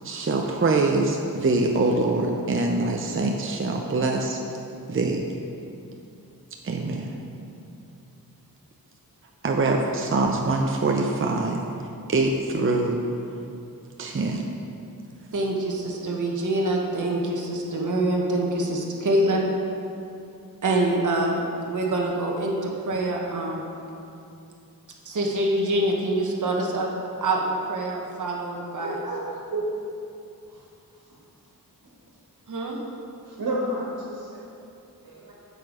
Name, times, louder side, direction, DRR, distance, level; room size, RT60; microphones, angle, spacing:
voice 1, 0.0-4.4 4.9-5.2 6.6-7.2 9.4-11.6 12.1-13.0 14.0-14.4, right 3 dB, 35° right, 1 dB, 0.6 m, -24 dB
voice 2, 15.3-19.5 20.6-23.7 25.1-26.9 27.2-29.0 32.5-32.8, right 1 dB, 55° right, -1 dB, 1.1 m, -25 dB
voice 3, 28.8-29.2 29.5-29.6 30.5-30.6 33.2-34.5 35.0-35.3, right 1 dB, 70° right, -4 dB, 1.9 m, -31 dB
9.1 x 6.8 x 4.9 m, 2.6 s
wide cardioid pair, 115°, 37 cm